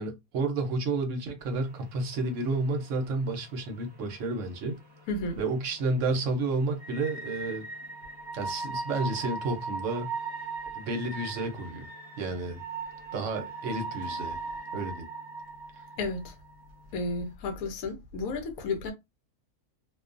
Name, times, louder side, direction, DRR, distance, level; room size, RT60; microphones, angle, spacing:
voice 1, 0.0-4.8 5.4-7.6 8.3-10.1 10.7-11.9 12.2-12.6 13.1-14.4 14.7-15.1, right 3 dB, 65° right, 0.9 m, -31 dB
sound 1, 1.4-17.3, right 3 dB, 35° right, 0.4 m, -40 dB
voice 2, 5.1-5.4 16.0-16.3 16.9-18.9, left 3 dB, 70° left, 1.0 m, -32 dB
2.5 x 2.2 x 2.5 m
omnidirectional pair, 1.6 m